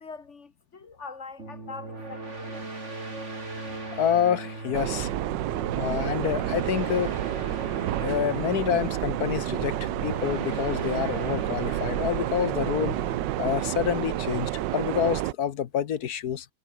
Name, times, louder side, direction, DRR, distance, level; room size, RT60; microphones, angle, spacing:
voice 1, 0.0-2.7, left 4 dB, 40° left, 1.7 m, -43 dB
sound 1, 1.4-14.7, right 2 dB, 40° right, 4.2 m, -38 dB
voice 2, 4.0-5.1 5.7-7.2 8.0-13.0 13.4-16.5, left 9 dB, 60° left, 1.5 m, -28 dB
sound 2, 4.7-15.3, right 15 dB, 75° right, 1.3 m, -30 dB
omnidirectional pair, 2.0 m